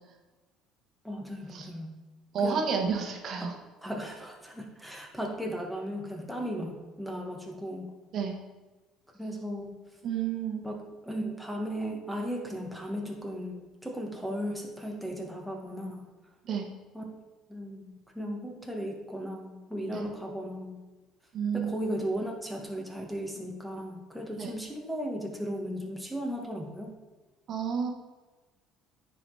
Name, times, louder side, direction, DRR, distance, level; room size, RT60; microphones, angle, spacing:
voice 1, 1.0-1.9 2.4-2.6 3.4-3.5 3.8-7.9 9.2-9.8 10.6-16.1 16.9-17.0 17.5-20.8 21.5-26.9, equal, ahead, 0 dB, 1.6 m, -36 dB
voice 2, 2.3-3.5 8.1-8.4 10.0-10.6 16.4-16.7 19.9-20.1 21.3-21.7 24.4-24.5 27.5-27.9, right 6 dB, 45° right, 3 dB, 1.3 m, -30 dB
9.8 x 4.9 x 4.9 m, 1.2 s
cardioid pair, 120°, 0 cm